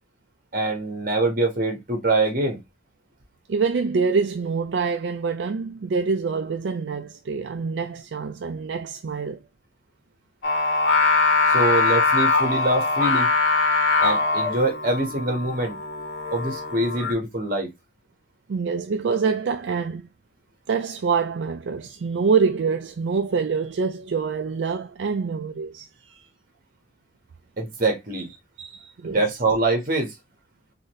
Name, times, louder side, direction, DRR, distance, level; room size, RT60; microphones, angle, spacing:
voice 1, 0.5-2.6 11.5-13.3 14.0-15.7 16.3-17.7 27.6-28.3 29.0-30.1, right 2 dB, 50° right, 1.5 m, -24 dB
voice 2, 3.5-9.4 18.5-20.1 20.7-25.9 28.6-29.2, right 5 dB, 75° right, 0.4 m, -25 dB
Singing, 10.4-17.1, left 3 dB, 80° left, 1.3 m, -22 dB
3.9 x 2.7 x 3.1 m
head